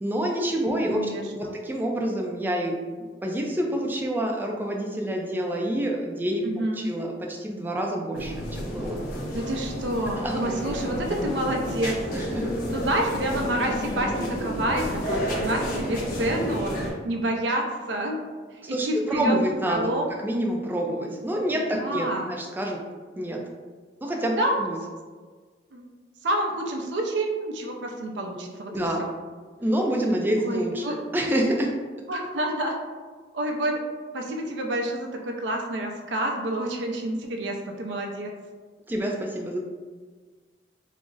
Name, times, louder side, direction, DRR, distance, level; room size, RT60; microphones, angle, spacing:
voice 1, 0.0-2.7 3.2-6.4 6.8-9.0 10.2-10.4 12.1-12.5 18.6-19.9 20.2-22.8 23.2-23.4 24.0-24.8 28.7-29.0 29.6-30.8 31.1-31.7 38.9-39.6, right 1 dB, 10° right, 0 dB, 0.3 m, -27 dB
voice 2, 0.9-1.5 6.4-6.9 8.2-8.6 9.3-12.0 12.7-18.2 18.5-19.3 19.7-20.1 21.7-22.3 24.4-24.6 25.7-25.9 26.2-28.7 29.0-29.1 30.4-31.0 32.1-32.8 33.3-33.8 34.1-38.3, right 1 dB, 80° right, 2 dB, 0.5 m, -28 dB
sound 1, 8.1-16.9, equal, 50° left, 0.6 m, -30 dB
2.4 x 2.0 x 3.7 m, 1.5 s
head